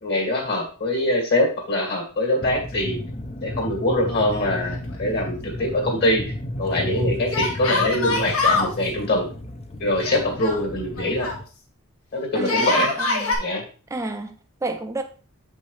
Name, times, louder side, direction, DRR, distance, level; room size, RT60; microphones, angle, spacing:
voice 1, 0.0-3.0 3.4-6.2 6.6-9.3 9.8-11.3 12.1-12.9 13.4-13.6, left 1 dB, 50° left, 2.4 m, -23 dB
sound 1, 2.4-11.4, left 1 dB, 30° left, 0.6 m, -33 dB
Yell, 4.1-4.9 5.2-5.3 7.3-8.7 10.0-11.4 12.4-13.4, left 3 dB, 80° left, 2.2 m, -24 dB
voice 2, 12.3-13.4 13.9-15.0, right 2 dB, 15° right, 0.5 m, -31 dB
7.4 x 5.4 x 3.2 m
head